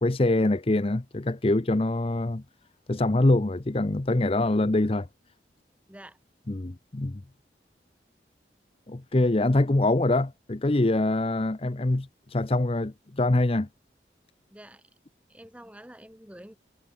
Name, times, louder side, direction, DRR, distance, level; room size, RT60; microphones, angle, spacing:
voice 1, 0.0-2.4 2.9-5.1 6.5-7.2 8.9-13.7, left 2 dB, 35° left, 0.7 m, -24 dB
voice 2, 14.5-14.8 15.3-16.6, right 1 dB, 5° right, 2.1 m, -47 dB
head